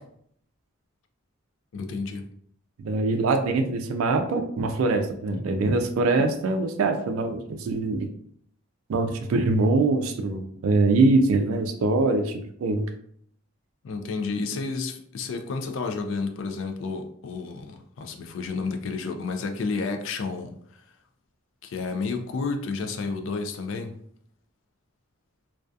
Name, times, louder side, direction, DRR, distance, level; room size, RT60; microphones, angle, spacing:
voice 1, 1.7-2.3 5.3-5.4 13.8-20.8 21.6-24.0, left 4 dB, 70° left, 6 dB, 0.3 m, -31 dB
voice 2, 2.8-8.1 8.9-12.3 12.6-12.9, right 3 dB, 90° right, 6 dB, 0.3 m, -23 dB
2.3 x 2.3 x 2.5 m, 0.65 s
head